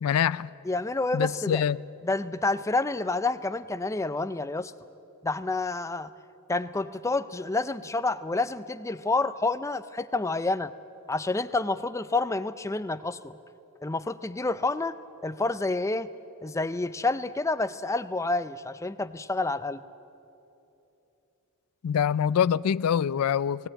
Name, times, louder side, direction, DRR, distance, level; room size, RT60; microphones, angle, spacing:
voice 1, 0.0-0.5 1.1-1.8 21.8-23.7, left 8 dB, 85° left, 0.4 m, -25 dB
voice 2, 0.7-1.6 2.0-4.7 5.2-6.1 6.5-10.7 11.1-13.4 13.8-15.0 15.2-16.1 16.4-19.8, left 3 dB, 15° left, 0.4 m, -28 dB
19.5 x 18.0 x 8.8 m
head